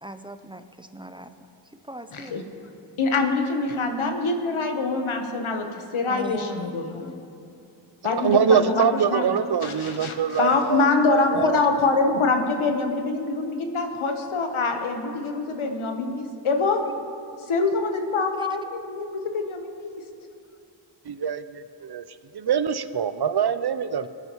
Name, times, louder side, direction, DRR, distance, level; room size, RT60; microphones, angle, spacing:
voice 1, 0.0-1.3 1.8-2.3 6.1-6.8 18.4-18.5, equal, 10° right, 9 dB, 0.5 m, -38 dB
voice 2, 2.1-2.4 3.0-5.7 5.9-7.2 8.0-9.3 9.6-16.8 17.5-20.0, left 3 dB, 90° left, 4 dB, 1.2 m, -25 dB
voice 3, 8.2-11.6 21.1-22.0 22.3-24.1, right 7 dB, 55° right, 13 dB, 0.6 m, -24 dB
20.5 x 9.2 x 3.1 m, 2.5 s
cardioid pair, 50°, 48 cm